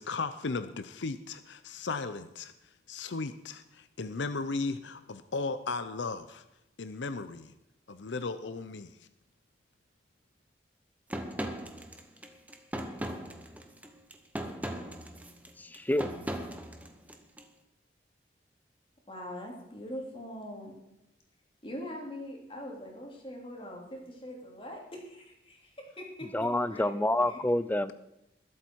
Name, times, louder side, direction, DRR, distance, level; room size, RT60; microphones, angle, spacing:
voice 1, 0.0-2.5 2.9-6.4 6.8-7.5 7.9-9.1, left 3 dB, 85° left, 11 dB, 0.7 m, -36 dB
sound 1, 11.1-17.4, right 1 dB, 10° right, 1.0 m, -38 dB
voice 2, 15.6-16.1 26.3-27.9, left 1 dB, 10° left, 15 dB, 0.4 m, -28 dB
voice 3, 19.1-20.8 21.6-27.0 27.3-27.4, left 1 dB, 30° left, 0 dB, 3.0 m, -42 dB
20.5 x 8.1 x 4.6 m, 0.87 s
head